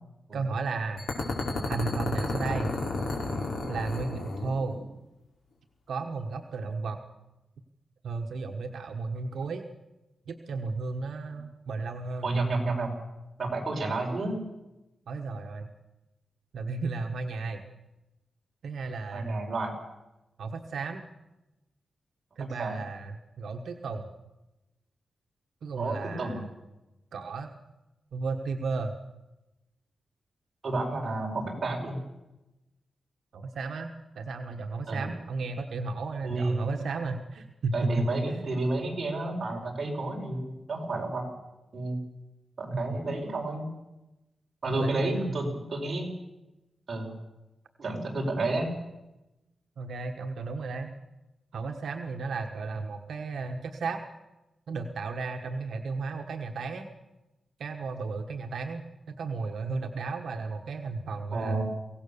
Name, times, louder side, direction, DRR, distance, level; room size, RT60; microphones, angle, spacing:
voice 1, 0.3-1.1 1.7-2.7 3.7-4.8 5.9-7.0 8.0-9.6 10.3-12.3 15.1-15.7 16.5-17.6 18.6-19.4 20.4-21.0 22.4-24.1 25.6-26.4 27.1-27.5 28.1-28.9 33.3-38.1 44.7-45.5 49.8-50.9 51.5-54.0 54.7-56.9 57.6-61.6, right 4 dB, 85° right, 4 dB, 1.4 m, -34 dB
sound 1, 1.0-4.8, left 2 dB, 85° left, 5.0 m, -32 dB
voice 2, 12.2-13.0 13.4-14.4 19.1-19.7 22.4-22.8 25.7-26.5 30.6-32.0 34.9-35.1 36.2-36.7 37.7-41.2 41.7-42.0 42.6-43.7 44.6-46.1 46.9-47.1 47.8-48.8 61.3-61.6, right 2 dB, 35° right, -1 dB, 5.1 m, -30 dB
23.5 x 17.5 x 7.0 m, 0.99 s
wide cardioid pair, 180°, 0 cm